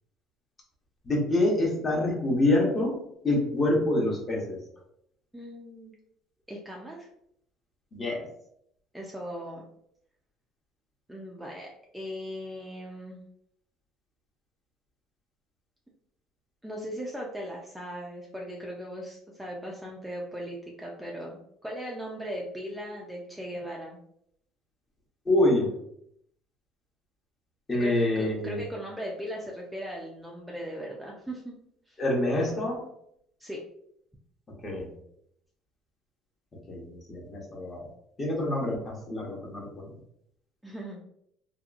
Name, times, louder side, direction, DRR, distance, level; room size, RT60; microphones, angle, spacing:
voice 1, 1.0-4.6 7.9-8.2 25.3-25.8 27.7-28.6 32.0-32.8 34.6-34.9 36.7-37.8 38.2-39.9, left 1 dB, 25° left, -1 dB, 0.9 m, -26 dB
voice 2, 5.3-5.9 6.5-7.1 8.9-9.7 11.1-13.2 16.6-24.0 27.8-31.5 31.9-32.0 33.4-33.6 40.6-41.0, equal, 5° right, -2 dB, 0.4 m, -38 dB
2.8 x 2.2 x 2.4 m, 0.72 s
cardioid pair, 115°, 0 cm